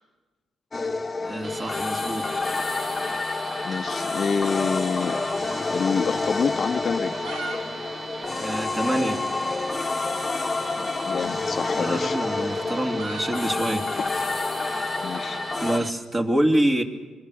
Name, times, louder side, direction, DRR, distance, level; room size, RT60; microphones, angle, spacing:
sound 1, 0.7-15.8, left 3 dB, 25° left, 1.2 m, -28 dB
voice 1, 1.2-2.4 8.4-9.2 11.7-13.9 14.7-15.0 15.6-16.8, right 1 dB, 25° right, 4 dB, 2.5 m, -26 dB
sound 2, 1.4-15.9, right 3 dB, 50° right, 2.0 m, -38 dB
voice 2, 3.6-7.3 10.8-12.2 15.0-15.4, left 5 dB, 45° left, 9 dB, 0.8 m, -28 dB
sound 3, 4.9-6.0 6.2-6.3 6.9-7.6 7.9-8.0 8.2-8.3 8.9-9.0 10.2-10.4 11.5-15.7, right 2 dB, 85° right, 3.9 m, -39 dB
25.5 x 23.5 x 6.5 m, 1.4 s
cardioid pair, 90°, 0 cm